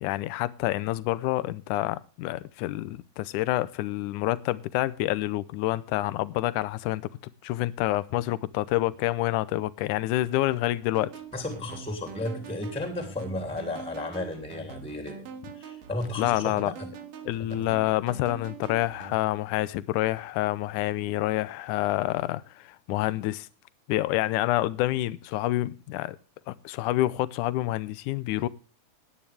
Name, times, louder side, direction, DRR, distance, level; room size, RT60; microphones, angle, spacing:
voice 1, 0.0-7.1 7.4-11.1 16.2-16.7 17.3-23.5 23.9-26.2 26.5-28.5, left 16 dB, 80° left, 2.2 m, -28 dB
sound 1, 10.9-19.2, right 5 dB, 90° right, 3.4 m, -44 dB
voice 2, 11.3-15.3 15.5-16.9, left 2 dB, ahead, 2.6 m, -34 dB
18.5 x 9.8 x 3.4 m
omnidirectional pair, 3.7 m